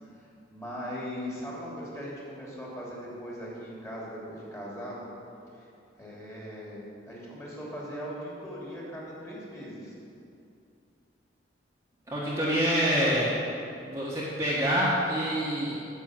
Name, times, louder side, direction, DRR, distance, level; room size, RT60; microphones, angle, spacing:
voice 1, 0.2-5.1 5.5-5.7 6.0-9.9, equal, 15° left, -5 dB, 3.0 m, -39 dB
voice 2, 12.1-13.4 13.9-15.9, equal, 15° right, -8 dB, 1.5 m, -26 dB
9.1 x 7.3 x 7.9 m, 2.6 s
head